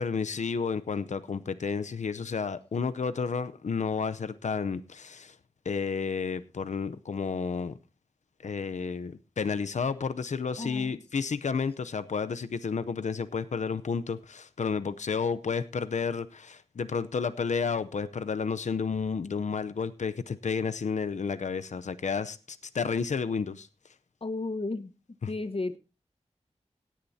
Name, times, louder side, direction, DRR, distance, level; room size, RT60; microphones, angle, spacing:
voice 1, 0.0-5.4 5.6-7.8 8.4-23.7 25.2-25.3, left 5 dB, 85° left, 0.6 m, -31 dB
voice 2, 10.6-11.0 24.2-24.9 25.3-25.8, left 2 dB, 50° left, 1.1 m, -33 dB
17.0 x 10.5 x 2.7 m
wide cardioid pair, 60°, 12 cm